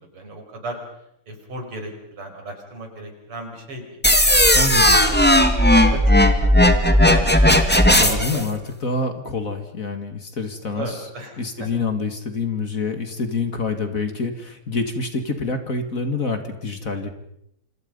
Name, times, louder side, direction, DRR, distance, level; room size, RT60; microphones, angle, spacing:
voice 1, 0.1-0.8 1.3-3.8 4.6-6.3 6.8-7.4 7.8-8.5 10.7-11.7, right 2 dB, 85° right, 4 dB, 6.2 m, -35 dB
sound 1, 4.0-8.4, left 1 dB, 5° left, 1.9 m, -15 dB
voice 2, 4.5-5.0 8.0-11.0 11.4-17.1, left 3 dB, 40° left, 7 dB, 2.5 m, -27 dB
28.0 x 27.0 x 5.5 m, 0.76 s
omnidirectional pair, 2.4 m